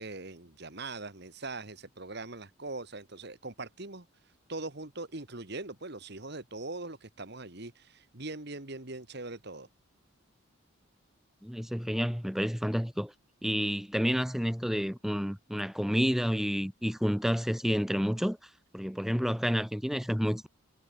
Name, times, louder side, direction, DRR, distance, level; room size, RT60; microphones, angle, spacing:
voice 1, 0.0-9.7, right 2 dB, 50° right, 2.1 m, -41 dB
voice 2, 11.4-13.1 13.4-18.4 18.7-20.5, equal, ahead, 1.2 m, -29 dB
head